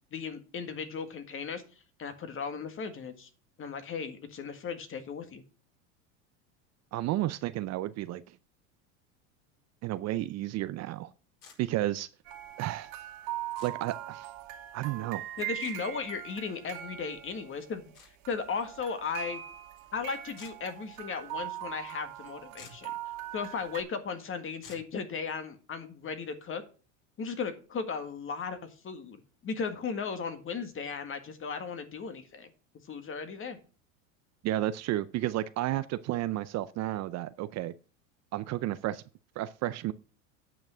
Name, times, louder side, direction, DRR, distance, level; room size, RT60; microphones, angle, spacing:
voice 1, 0.1-1.6 2.0-3.3 3.6-5.4 15.4-17.9 18.3-19.4 19.9-22.9 23.3-26.6 27.2-32.5 32.9-33.6, left 5 dB, 30° left, 1.8 m, -36 dB
voice 2, 6.9-8.4 9.8-11.1 11.6-12.1 12.6-12.9 13.6-14.3 14.7-15.2 34.4-37.7 38.3-39.0 39.4-39.9, right 15 dB, 40° right, 0.5 m, -32 dB
sound 1, 11.4-11.6 13.6-13.7 15.6-15.8 17.9-18.1 20.4-20.5 22.2-22.3 22.5-22.9 24.6-24.9, left 5 dB, 60° left, 5.8 m, -51 dB
sound 2, 12.2-18.0 18.2-23.8, right 13 dB, 60° right, 2.2 m, -41 dB
9.2 x 5.9 x 6.2 m
supercardioid pair, 115°, 40 cm